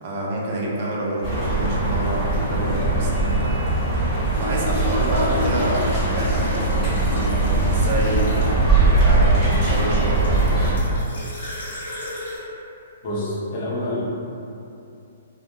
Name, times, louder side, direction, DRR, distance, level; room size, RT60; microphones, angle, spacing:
voice 1, 0.0-10.7, right 1 dB, 50° right, -4 dB, 0.5 m, -28 dB
sound 1, 1.2-10.7, right 2 dB, 10° left, 1.0 m, -20 dB
sound 2, 4.3-8.8 9.5-12.4, left 2 dB, 80° left, 0.9 m, -34 dB
voice 2, 13.0-14.0, left 1 dB, 45° left, -6 dB, 0.6 m, -27 dB
2.2 x 2.1 x 2.9 m, 2.7 s
hypercardioid pair, 145°, 0 cm